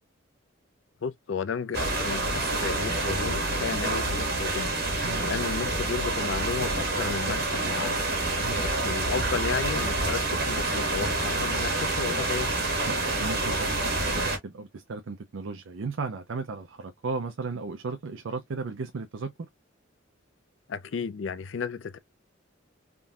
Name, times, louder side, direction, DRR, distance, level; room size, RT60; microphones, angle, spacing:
voice 1, 1.0-4.8 5.2-8.0 8.6-12.5 20.7-22.0, left 5 dB, 65° left, 0.4 m, -33 dB
sound 1, 1.7-14.4, right 2 dB, 50° right, 1.6 m, -27 dB
voice 2, 5.0-5.4 8.3-8.7 12.9-19.5, right 4 dB, 70° right, 0.5 m, -35 dB
3.7 x 2.6 x 2.4 m
head